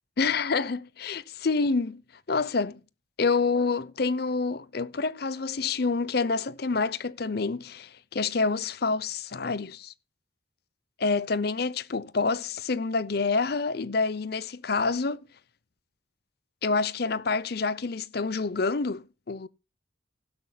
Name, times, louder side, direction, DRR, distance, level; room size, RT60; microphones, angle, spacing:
voice 1, 0.2-2.0 2.3-2.8 3.2-9.9 11.0-15.3 16.6-19.5, left 4 dB, 50° left, 0.6 m, -27 dB
16.0 x 12.5 x 2.2 m
head